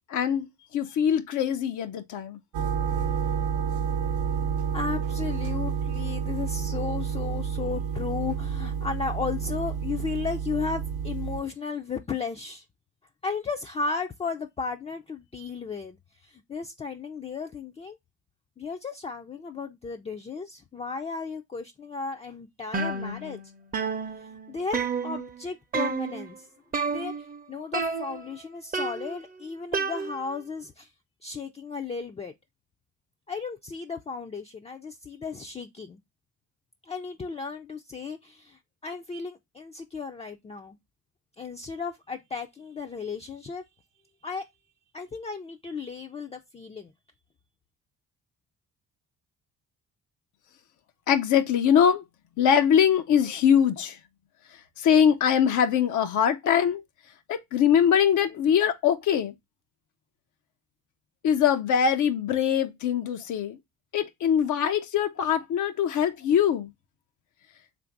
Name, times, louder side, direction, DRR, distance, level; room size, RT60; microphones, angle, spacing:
voice 1, 0.1-0.5 0.7-2.4 51.1-52.0 52.4-54.0 54.8-56.8 57.3-59.3 61.2-63.6 63.9-66.7, left 8 dB, 80° left, 0.6 m, -22 dB
sound 1, 2.5-11.4, right 7 dB, 80° right, 0.7 m, -29 dB
voice 2, 4.7-12.6 13.2-18.0 18.6-23.4 24.2-26.5 26.9-27.1 27.5-30.9 31.2-32.3 33.3-36.0 36.9-40.8 41.4-43.6 44.2-44.5 44.9-46.9, left 5 dB, 20° left, 0.4 m, -34 dB
sound 2, 22.7-23.5 23.7-25.4 25.7-26.3 26.7-27.4 27.7-28.4 28.7-30.4, right 4 dB, 30° right, 0.6 m, -31 dB
3.4 x 2.6 x 4.4 m
cardioid pair, 90°, 30 cm